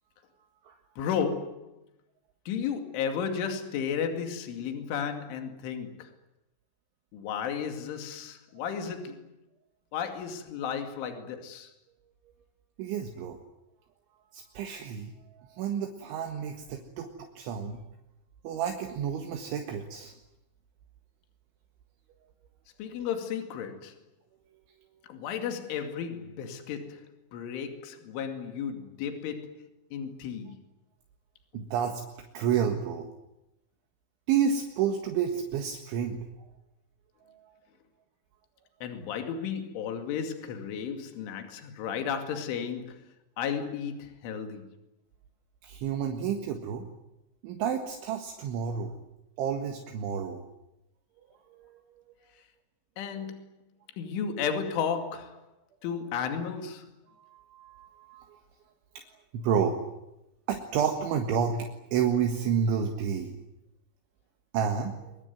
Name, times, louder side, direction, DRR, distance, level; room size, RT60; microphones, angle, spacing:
voice 1, 1.0-1.7 2.5-6.1 7.1-9.3 9.9-11.7 22.8-23.9 25.1-30.6 31.5-31.6 38.8-43.1 43.4-44.7 53.0-53.5 54.0-55.4 55.8-56.9, left 7 dB, 70° left, 4.7 m, -33 dB
voice 2, 12.8-13.4 14.3-15.1 15.5-17.1 17.4-17.8 18.4-20.1 22.9-23.1 31.5-32.0 32.3-33.1 34.3-36.2 45.6-46.9 47.4-48.9 49.4-50.4 51.6-51.7 57.2-58.4 59.3-59.8 60.5-63.4 64.5-65.0, right 7 dB, 70° right, 4.0 m, -30 dB
24.0 x 22.5 x 9.4 m
omnidirectional pair, 5.9 m